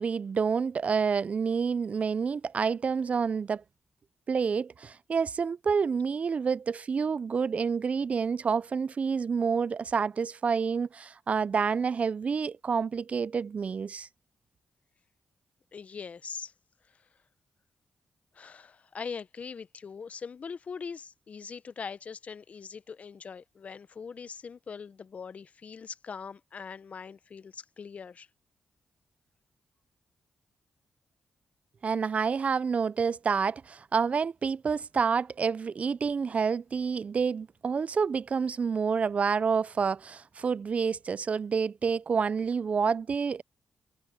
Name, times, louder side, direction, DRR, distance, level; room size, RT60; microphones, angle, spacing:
voice 1, 0.0-3.6 4.3-14.1 31.8-43.4, right 5 dB, 50° right, 0.5 m, -28 dB
voice 2, 15.7-16.5 18.3-28.3, left 6 dB, 55° left, 1.0 m, -42 dB
supercardioid pair, 45°, 3 cm